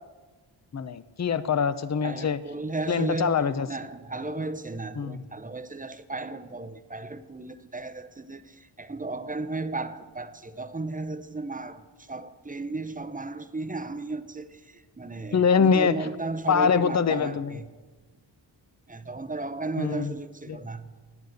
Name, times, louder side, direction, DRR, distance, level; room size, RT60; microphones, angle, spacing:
voice 1, 0.7-2.4 2.9-3.7 5.0-5.2 15.3-16.0 16.5-17.6 19.8-20.1 20.5-20.6, left 6 dB, 35° left, 0.6 m, -24 dB
voice 2, 2.0-3.4 3.7-17.7 18.9-20.9, right 2 dB, 20° right, 0.7 m, -35 dB
11.0 x 9.5 x 7.8 m
wide cardioid pair, 90°, 46 cm